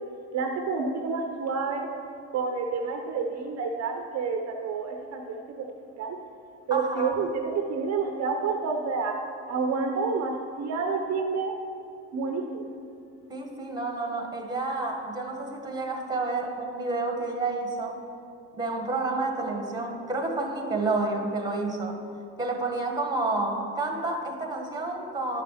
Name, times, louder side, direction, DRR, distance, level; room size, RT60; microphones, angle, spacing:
voice 1, 0.3-1.9 2.3-6.2 6.7-9.2 9.5-11.5 12.1-12.7, right 4 dB, 50° right, 3 dB, 0.8 m, -29 dB
voice 2, 6.7-7.1 13.3-18.0 18.5-22.0 22.4-25.4, right 3 dB, 10° right, 3 dB, 1.4 m, -30 dB
10.5 x 5.4 x 5.6 m, 2.5 s
supercardioid pair, 95°, 32 cm